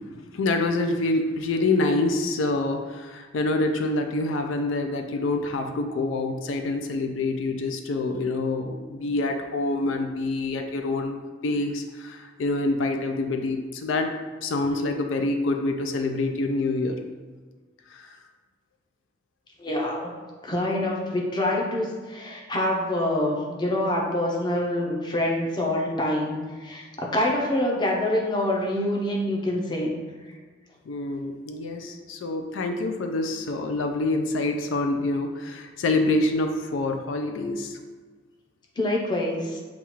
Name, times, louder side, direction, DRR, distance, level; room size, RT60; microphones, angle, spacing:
voice 1, 0.3-14.2 14.4-17.0 17.9-18.2 30.9-37.8, left 2 dB, 80° left, 4 dB, 0.4 m, -26 dB
voice 2, 19.6-20.2 20.4-29.9 38.8-39.6, left 1 dB, 25° left, -1 dB, 0.6 m, -26 dB
6.8 x 2.4 x 3.0 m, 1.4 s
head